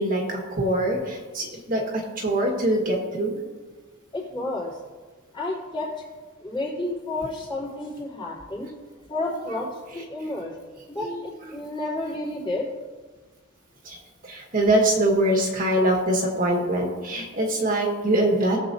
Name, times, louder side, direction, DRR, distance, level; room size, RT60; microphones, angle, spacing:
voice 1, 0.0-3.4 9.5-9.6 11.0-11.2 11.5-11.6 13.8-14.0 14.2-18.6, right 1 dB, 40° right, 0 dB, 1.5 m, -23 dB
voice 2, 4.1-4.7 5.3-5.9 6.4-8.7 9.1-9.7 9.9-10.5 10.9-12.7, left 2 dB, 20° left, -6 dB, 3.3 m, -31 dB
19.0 x 7.4 x 2.7 m, 1.4 s
head